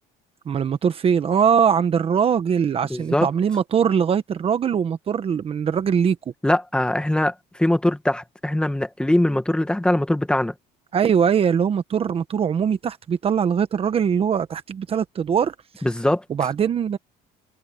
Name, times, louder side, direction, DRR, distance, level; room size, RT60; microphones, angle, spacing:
voice 1, 0.4-6.2 10.9-15.8 16.3-17.0, right 7 dB, 35° right, 1.2 m, -21 dB
voice 2, 2.9-3.3 6.4-7.3 7.6-10.5 15.8-16.2, left 1 dB, 5° left, 1.6 m, -21 dB
cardioid pair, 125°, 16 cm